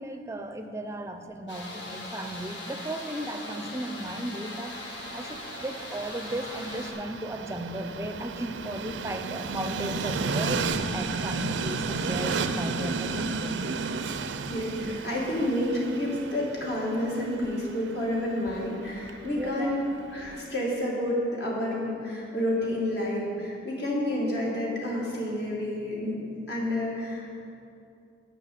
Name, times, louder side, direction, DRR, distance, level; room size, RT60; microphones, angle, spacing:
voice 1, 0.0-4.8 5.1-10.6 10.9-13.7 14.7-14.9 19.2-19.7, right 1 dB, 15° right, 7 dB, 0.5 m, -35 dB
sound 1, 1.5-6.9, left 1 dB, 75° left, 2.0 m, -40 dB
Train, 4.5-20.6, right 4 dB, 75° right, 0.5 m, -34 dB
voice 2, 14.5-19.8 20.1-26.2 26.5-27.4, left 1 dB, 60° left, -4 dB, 2.1 m, -29 dB
11.0 x 5.7 x 8.4 m, 2.5 s
head